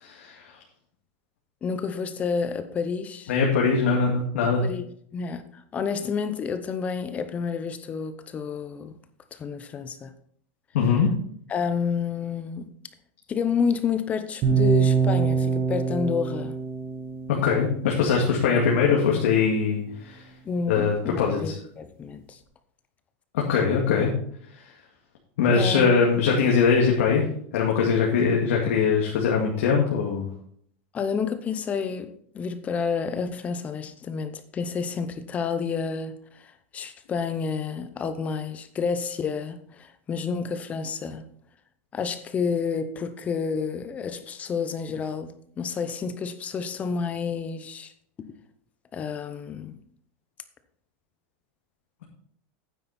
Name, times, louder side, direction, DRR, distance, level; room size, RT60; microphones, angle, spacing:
voice 1, 0.0-0.5 3.3-4.6 10.7-11.1 17.3-20.2 20.7-21.6 23.3-24.1 25.4-27.2 27.5-30.3, left 5 dB, 85° left, 2.2 m, -22 dB
voice 2, 1.6-3.3 4.4-5.4 5.7-9.0 9.3-10.1 11.5-12.7 13.3-16.5 20.4-22.4 25.5-25.9 30.9-32.1 32.3-36.1 36.4-41.2 41.9-47.9 48.9-49.7, left 6 dB, 20° left, 0.8 m, -29 dB
sound 1, 14.4-18.5, right 6 dB, 35° right, 2.4 m, -25 dB
9.3 x 8.5 x 4.3 m
supercardioid pair, 160°, 7 cm